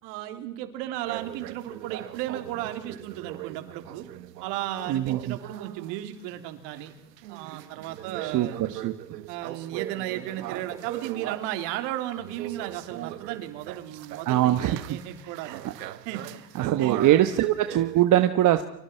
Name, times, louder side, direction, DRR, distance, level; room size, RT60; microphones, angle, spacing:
voice 1, 0.0-4.1 4.4-6.9 7.3-8.6 9.3-15.6 16.0-16.2 16.8-17.2, right 13 dB, 60° right, 7 dB, 3.4 m, -35 dB
sound 1, 1.0-11.7 12.1-18.0, right 14 dB, 85° right, 1.6 m, -40 dB
voice 2, 4.9-5.4 8.2-8.9 14.2-14.8 15.4-15.6 16.5-18.6, right 13 dB, 40° right, 8 dB, 1.3 m, -22 dB
30.0 x 25.5 x 4.5 m, 0.83 s
supercardioid pair, 110°, 48 cm